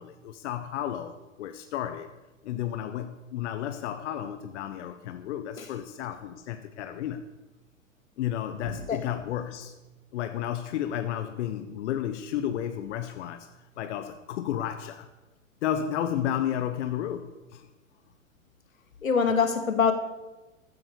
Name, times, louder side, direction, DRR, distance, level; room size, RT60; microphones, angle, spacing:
voice 1, 0.0-2.1 2.4-7.3 8.2-9.7 10.1-13.5 13.8-15.1 15.6-17.7, left 10 dB, 60° left, 1.3 m, -32 dB
voice 2, 8.6-9.0 19.0-19.9, left 5 dB, 90° left, 2.4 m, -24 dB
15.0 x 9.4 x 7.0 m
hypercardioid pair, 115°, 40 cm